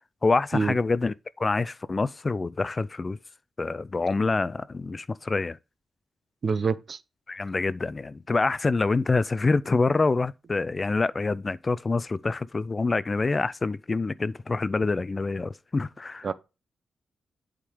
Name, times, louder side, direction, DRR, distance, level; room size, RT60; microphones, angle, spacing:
voice 1, 0.2-3.2 3.6-5.6 7.3-16.3, left 3 dB, 35° left, 0.4 m, -26 dB
voice 2, 6.4-7.0 16.2-16.3, right 5 dB, 55° right, 0.7 m, -26 dB
8.4 x 3.7 x 4.9 m
cardioid pair, 75°, 0 cm